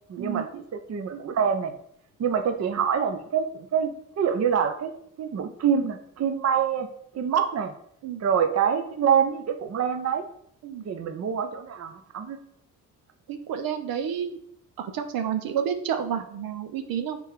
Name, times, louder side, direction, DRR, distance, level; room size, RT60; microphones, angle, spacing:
voice 1, 0.1-1.7 2.2-4.9 5.2-6.9 7.1-7.7 8.2-10.3 10.8-12.4, right 7 dB, 50° right, 8 dB, 0.7 m, -26 dB
voice 2, 13.3-14.4 14.8-17.2, right 8 dB, 85° right, 7 dB, 0.7 m, -30 dB
6.9 x 3.4 x 4.6 m, 0.69 s
cardioid pair, 115°, 34 cm